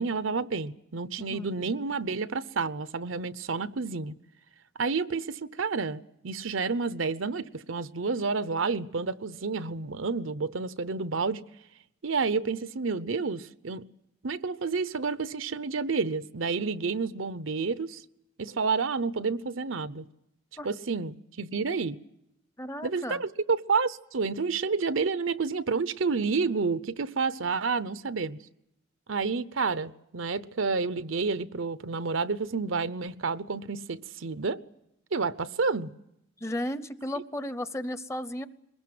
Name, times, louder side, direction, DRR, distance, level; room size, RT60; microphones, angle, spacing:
voice 1, 0.0-4.1 4.8-11.4 12.0-13.8 14.2-18.0 18.4-20.0 20.6-22.0 22.8-28.4 29.1-34.6 35.1-35.9, right 4 dB, 80° right, 14 dB, 0.8 m, -30 dB
voice 2, 1.2-1.7 20.6-20.7 22.6-23.2 36.4-38.5, left 1 dB, 15° left, 13 dB, 0.8 m, -34 dB
22.5 x 20.5 x 7.7 m, 0.83 s
head